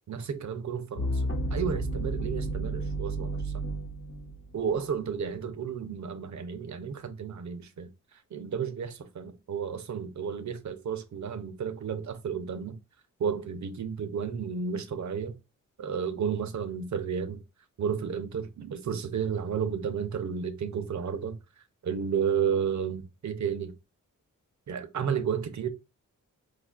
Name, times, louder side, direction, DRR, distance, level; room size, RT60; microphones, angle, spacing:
voice 1, 0.1-1.2 1.5-3.7 4.5-7.9 8.3-12.8 13.2-15.4 15.8-17.4 17.8-21.4 21.8-23.7 24.7-25.7, right 7 dB, 60° right, 0.6 m, -32 dB
sound 1, 1.0-5.0, right 1 dB, 40° left, 0.7 m, -32 dB
4.8 x 2.3 x 2.4 m
cardioid pair, 70°, 33 cm